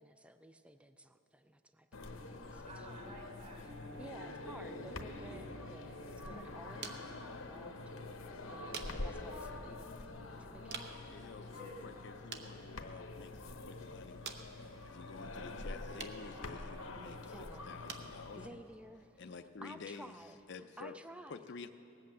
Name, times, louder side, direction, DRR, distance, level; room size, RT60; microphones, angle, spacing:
voice 1, 0.0-3.0 4.0-11.1 17.0-17.7 18.4-19.3 19.6-20.4 20.8-21.5, right 1 dB, 5° right, 10 dB, 0.3 m, -54 dB
sound 1, 1.9-18.5, left 2 dB, 85° left, 1.0 m, -46 dB
voice 2, 2.6-4.4 11.3-11.8, equal, 35° right, 0 dB, 3.3 m, -53 dB
Piano, 3.6-14.5 14.8-15.0 15.3-15.5 15.8-16.1 16.4-16.5, equal, 80° right, 2.1 m, -59 dB
sound 2, 5.6-20.6, right 5 dB, 55° right, 0.9 m, -53 dB
voice 3, 11.1-14.2 14.8-18.6 19.2-20.1 20.5-20.9 21.3-21.7, left 5 dB, 55° left, 8 dB, 0.5 m, -50 dB
18.5 x 8.3 x 7.6 m, 2.8 s
head